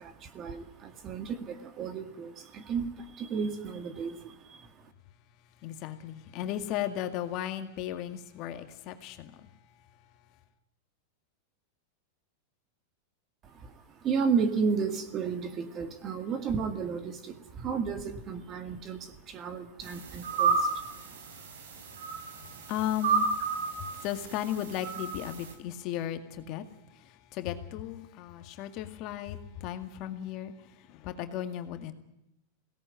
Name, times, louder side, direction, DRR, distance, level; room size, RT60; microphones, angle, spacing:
voice 1, 0.0-4.9 13.4-20.9, right 5 dB, 25° right, 10 dB, 2.0 m, -33 dB
voice 2, 5.6-9.5 22.7-23.3 23.8-26.6 26.9-30.5 30.9-31.9, left 11 dB, 35° left, 8 dB, 2.1 m, -35 dB
sound 1, 19.8-25.5, right 5 dB, 75° right, 6.0 m, -32 dB
23.0 x 18.0 x 9.2 m, 0.88 s
supercardioid pair, 165°, 0 cm